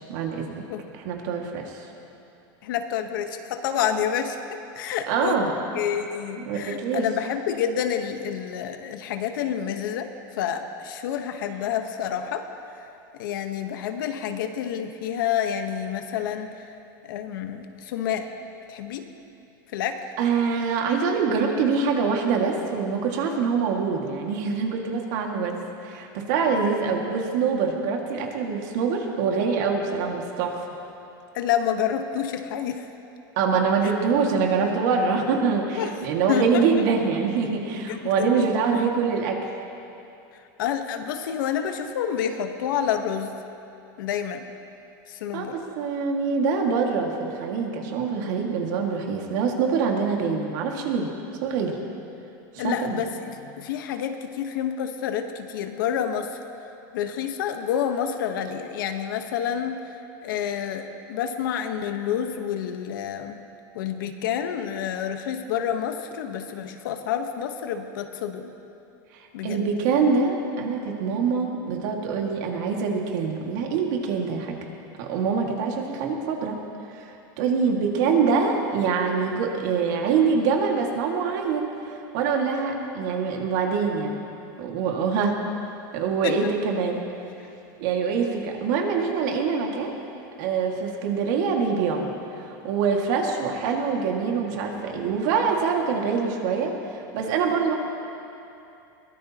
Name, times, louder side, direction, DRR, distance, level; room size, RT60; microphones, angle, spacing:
voice 1, 0.1-0.6 0.9-1.8 5.1-5.5 6.4-7.1 20.2-30.6 33.4-39.5 45.3-51.1 51.4-51.8 52.5-53.0 69.4-74.6 75.0-76.6 76.9-77.1 77.4-84.2 84.6-85.4 85.9-87.0 87.8-89.9 90.4-92.1 92.5-97.7, right 5 dB, 65° right, 1 dB, 2.1 m, -24 dB
voice 2, 2.6-5.4 5.7-12.8 13.2-16.7 17.1-18.3 18.7-19.1 19.7-20.0 31.3-32.8 35.8-35.9 36.3-36.6 37.7-38.5 40.6-43.4 44.0-44.4 45.1-45.6 52.6-56.4 56.9-59.8 60.2-63.4 63.7-68.5 69.3-69.6 86.2-86.5, left 9 dB, 80° left, 6 dB, 1.2 m, -28 dB
22.5 x 17.0 x 3.0 m, 2.8 s
supercardioid pair, 140°, 11 cm